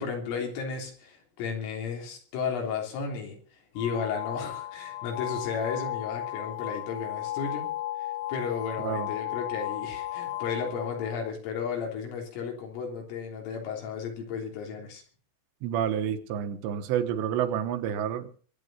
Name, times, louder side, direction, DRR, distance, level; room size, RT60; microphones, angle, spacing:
voice 1, 0.0-7.7 8.0-15.0, left 6 dB, 90° left, 1 dB, 6.1 m, -34 dB
sound 1, 3.8-11.3, left 14 dB, 70° left, 2.9 m, -35 dB
voice 2, 15.6-18.4, right 9 dB, 70° right, 9 dB, 3.1 m, -29 dB
23.0 x 9.1 x 5.6 m, 0.44 s
omnidirectional pair, 5.6 m